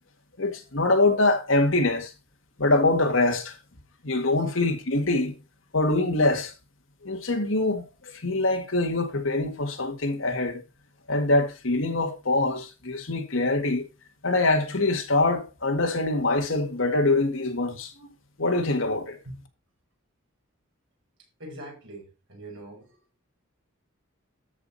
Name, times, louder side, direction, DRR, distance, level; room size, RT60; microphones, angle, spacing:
voice 1, 0.4-2.1 2.6-3.6 4.0-5.4 5.7-6.6 7.0-10.6 11.1-13.9 14.2-19.2, left 2 dB, 70° left, 1.8 m, -24 dB
voice 2, 21.4-23.0, right 1 dB, 65° right, 5.5 m, -43 dB
13.0 x 5.1 x 4.1 m
head